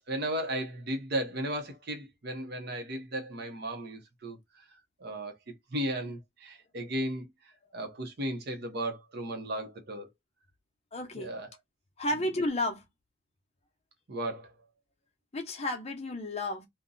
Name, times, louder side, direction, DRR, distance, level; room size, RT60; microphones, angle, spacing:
voice 1, 0.1-4.6 5.0-5.3 5.7-7.3 7.7-10.1 11.1-11.5 14.1-14.5, right 1 dB, 60° right, 0.8 m, -35 dB
voice 2, 10.9-11.4 12.0-12.8 15.3-16.7, left 1 dB, 35° left, 0.7 m, -32 dB
2.6 x 2.2 x 3.8 m
head